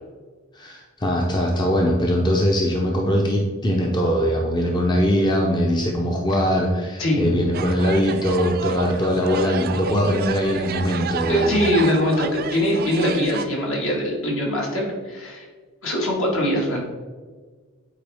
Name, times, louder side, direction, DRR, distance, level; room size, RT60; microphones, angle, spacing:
voice 1, 0.5-11.5, equal, 20° left, 0 dB, 0.6 m, -21 dB
sound 1, 7.5-13.4, right 6 dB, 40° right, 0.4 m, -31 dB
voice 2, 11.3-15.5 15.8-16.8, left 1 dB, 60° left, -2 dB, 2.0 m, -22 dB
8.3 x 4.5 x 3.5 m, 1.5 s
head